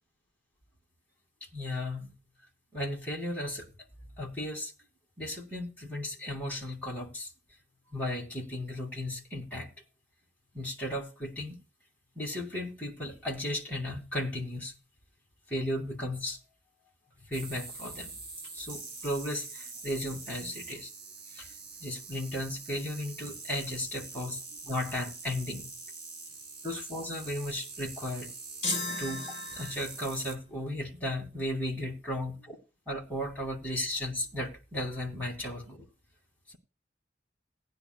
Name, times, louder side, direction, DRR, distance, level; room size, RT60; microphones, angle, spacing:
voice 1, 1.4-2.1 2.7-3.7 4.2-4.7 5.2-7.3 7.9-9.7 10.5-11.6 12.2-14.8 15.5-16.4 17.3-18.1 18.5-20.9 21.3-21.5 21.8-25.7 26.6-28.3 29.0-32.3 32.9-35.8 36.5-36.6, left 1 dB, 10° left, 2.3 m, -35 dB
sound 1, 17.3-30.4, right 3 dB, 60° right, 2.4 m, -44 dB
sound 2, 28.6-30.1, left 2 dB, 50° left, 2.0 m, -35 dB
18.0 x 9.9 x 2.3 m
head